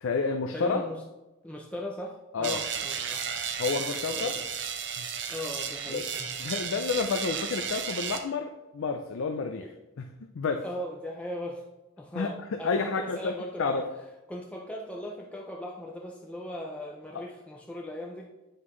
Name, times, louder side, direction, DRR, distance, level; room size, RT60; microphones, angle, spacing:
voice 1, 0.0-0.8 2.3-2.6 3.6-4.4 5.0-5.1 5.9-6.0 6.4-9.6 10.0-10.6 12.1-13.3 13.6-13.8, left 4 dB, 65° left, 5 dB, 0.4 m, -30 dB
voice 2, 0.5-1.0 1.4-3.3 3.8-4.5 5.3-6.3 9.6-9.7 10.6-11.6 12.0-13.8 14.3-18.3, left 1 dB, 5° left, -2 dB, 0.5 m, -39 dB
sound 1, 2.4-8.2, right 7 dB, 60° right, 0.7 m, -33 dB
7.9 x 5.7 x 3.1 m, 1.0 s
head